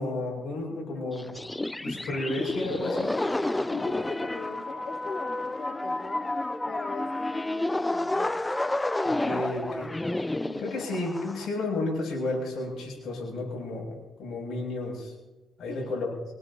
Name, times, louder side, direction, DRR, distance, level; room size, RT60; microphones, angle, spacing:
voice 1, 0.0-1.4 1.8-3.1 9.0-9.9 10.6-15.1 15.6-16.1, left 2 dB, 65° left, -2 dB, 7.1 m, -32 dB
sound 1, 1.1-11.5, left 2 dB, 15° left, 0.4 m, -30 dB
voice 2, 3.7-6.3 6.7-8.5 10.3-10.8 15.7-15.9, left 4 dB, 50° left, -1 dB, 2.4 m, -39 dB
23.5 x 19.5 x 2.9 m, 1.1 s
cardioid pair, 90°, 0 cm